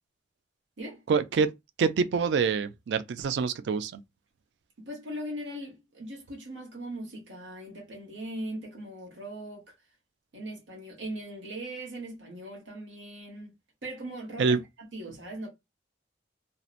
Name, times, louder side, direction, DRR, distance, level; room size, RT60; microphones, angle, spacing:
voice 1, 1.1-1.5 1.8-4.0 14.4-14.6, right 5 dB, 70° right, 0.3 m, -26 dB
voice 2, 4.8-9.8 10.3-13.5 13.8-15.5, right 1 dB, 90° right, 0.9 m, -40 dB
2.7 x 2.0 x 2.3 m
head